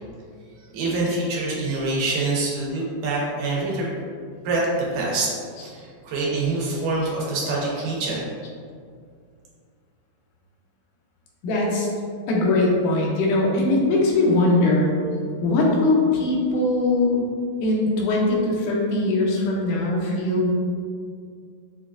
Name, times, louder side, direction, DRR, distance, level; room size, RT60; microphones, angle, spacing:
voice 1, 0.7-3.9 4.4-5.3 5.6-8.3, right 2 dB, 85° right, -4 dB, 2.4 m, -25 dB
voice 2, 11.4-11.9 12.3-14.9 15.4-17.3 17.6-20.5, left 2 dB, 90° left, -2 dB, 2.2 m, -21 dB
6.8 x 2.3 x 2.4 m, 2.2 s
omnidirectional pair, 3.6 m